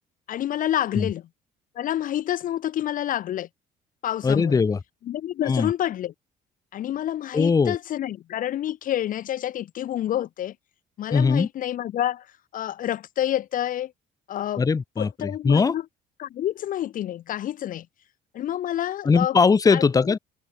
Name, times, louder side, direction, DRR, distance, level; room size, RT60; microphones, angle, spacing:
voice 1, 0.3-1.2 1.7-3.5 4.0-4.6 5.1-6.1 6.7-10.5 11.0-12.3 12.5-13.9 14.3-14.6 15.0-15.8 16.2-17.9 18.3-19.4 19.7-20.1, left 12 dB, 55° left, 0.6 m, -28 dB
voice 2, 4.2-4.8 5.4-5.7 7.3-7.8 11.1-11.5 14.6-15.7 19.0-20.2, left 5 dB, 20° left, 0.8 m, -20 dB
cardioid pair, 110°, 17 cm